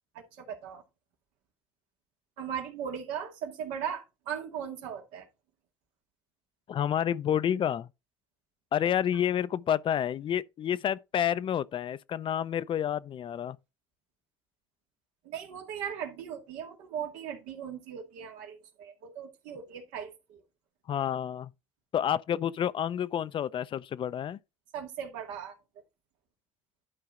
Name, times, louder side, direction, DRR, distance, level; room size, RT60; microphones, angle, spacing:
voice 1, 0.4-0.8 2.4-5.3 15.2-20.1 24.7-25.6, right 8 dB, 85° right, 2.2 m, -38 dB
voice 2, 6.7-7.9 8.7-13.6 20.9-21.5 21.9-24.4, left 9 dB, 45° left, 0.6 m, -29 dB
11.0 x 4.7 x 3.7 m
supercardioid pair, 80°, 12 cm